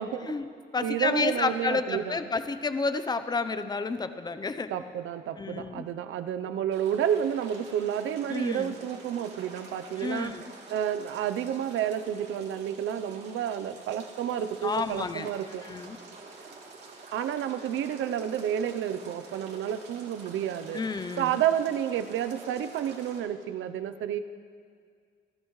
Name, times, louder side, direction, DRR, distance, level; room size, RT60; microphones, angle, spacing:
voice 1, 0.2-4.7 5.4-5.8 8.3-8.8 10.0-10.4 14.6-15.3 15.6-16.0 20.7-21.4, left 4 dB, 20° left, 11 dB, 0.7 m, -30 dB
voice 2, 0.8-2.2 4.7-10.4 10.7-15.6 17.1-20.8 21.2-24.2, right 9 dB, 80° right, 11 dB, 0.7 m, -30 dB
sound 1, 6.7-23.2, right 4 dB, 60° right, 3.1 m, -48 dB
28.5 x 14.5 x 3.2 m, 2.1 s
cardioid pair, 130°, 20 cm